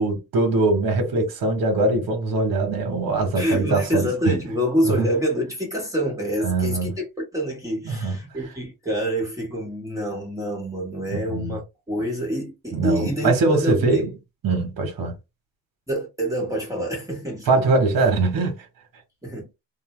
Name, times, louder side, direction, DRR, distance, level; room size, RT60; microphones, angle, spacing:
voice 1, 0.0-4.3 4.8-5.1 6.4-6.9 7.8-8.2 11.1-11.6 12.7-14.1 14.4-15.1 17.5-18.7, right 3 dB, 65° right, 1.0 m, -22 dB
voice 2, 3.4-14.1 15.9-17.6 19.2-19.4, equal, 10° right, 1.0 m, -26 dB
2.6 x 2.1 x 3.0 m
cardioid pair, 120°, 38 cm